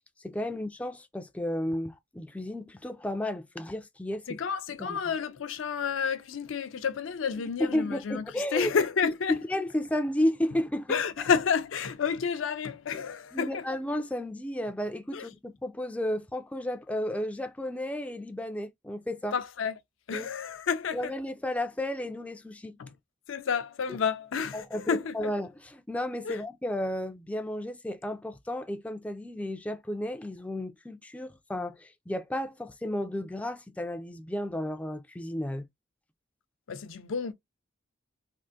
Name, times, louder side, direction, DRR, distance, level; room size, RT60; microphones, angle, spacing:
voice 1, 0.2-4.3 4.8-5.0 7.6-8.7 9.0-11.0 12.9-13.0 13.3-19.3 20.1-20.3 20.9-22.8 24.5-35.7, left 1 dB, 5° left, 0.3 m, -33 dB
voice 2, 4.3-9.4 10.9-13.6 15.1-15.3 19.3-19.8 20.1-21.1 22.8-22.9 23.3-25.3 26.2-26.4 36.7-37.3, left 6 dB, 80° left, 0.5 m, -30 dB
3.5 x 2.4 x 2.5 m
head